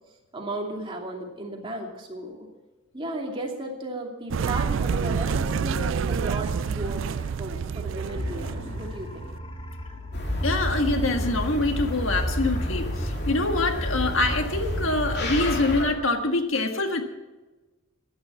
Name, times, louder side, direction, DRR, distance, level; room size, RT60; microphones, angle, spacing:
voice 1, 0.3-2.4 2.9-7.1 7.4-9.3, right 1 dB, 25° right, 0 dB, 2.6 m, -34 dB
sound 1, 4.3-9.2, right 6 dB, 65° right, 0.3 m, -28 dB
sound 2, 6.4-7.5 8.1-14.0, left 1 dB, 25° left, 1.8 m, -36 dB
sound 3, 10.1-15.9, left 1 dB, 50° left, 3.2 m, -29 dB
voice 2, 10.4-17.1, left 2 dB, 70° left, 6 dB, 1.6 m, -25 dB
14.0 x 10.0 x 7.3 m, 1.2 s
head